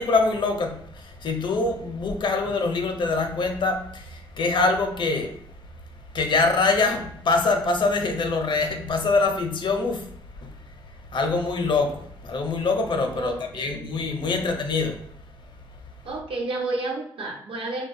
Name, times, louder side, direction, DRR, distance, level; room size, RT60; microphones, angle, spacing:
voice 1, 0.0-5.3 6.1-10.0 10.4-10.5 11.1-15.0, left 3 dB, 55° left, 4 dB, 0.5 m, -24 dB
voice 2, 13.1-13.9 14.2-14.5 16.0-17.9, right 2 dB, 70° right, 0 dB, 0.7 m, -31 dB
3.2 x 2.2 x 2.6 m, 0.69 s
cardioid pair, 65°, 9 cm